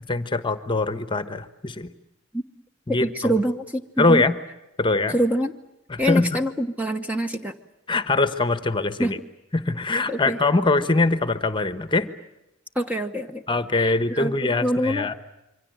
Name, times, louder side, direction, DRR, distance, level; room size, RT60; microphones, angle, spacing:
voice 1, 0.1-1.9 2.9-3.4 4.0-4.3 4.8-5.2 5.9-6.4 7.9-9.2 9.5-12.1 13.5-15.1, left 3 dB, 25° left, 11 dB, 1.2 m, -22 dB
voice 2, 3.0-4.2 5.1-5.5 6.0-7.5 9.0-9.1 10.1-10.4 12.7-13.4 13.8-14.3 14.6-15.1, equal, 5° right, 6 dB, 1.0 m, -25 dB
27.0 x 24.5 x 7.9 m, 0.90 s
head